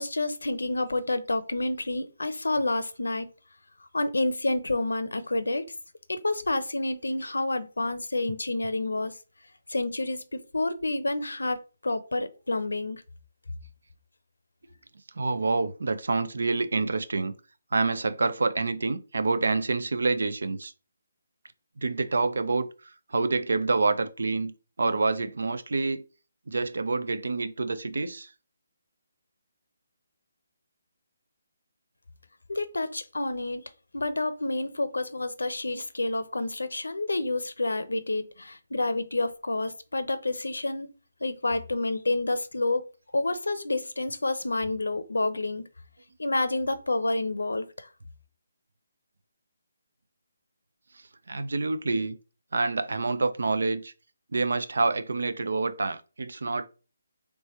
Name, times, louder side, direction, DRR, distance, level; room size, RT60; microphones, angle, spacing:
voice 1, 0.0-3.3 3.9-5.6 6.1-9.1 9.7-13.0 32.5-33.6 33.9-40.9 41.2-42.8 43.1-45.7 46.2-47.7, left 2 dB, 85° left, 0.7 m, -29 dB
voice 2, 15.2-17.4 17.7-20.7 21.8-26.0 26.5-28.3 51.3-52.2 52.5-53.9 54.3-56.7, right 3 dB, 70° right, 0.5 m, -27 dB
3.4 x 3.2 x 4.2 m
figure-of-eight pair, 155°, 0 cm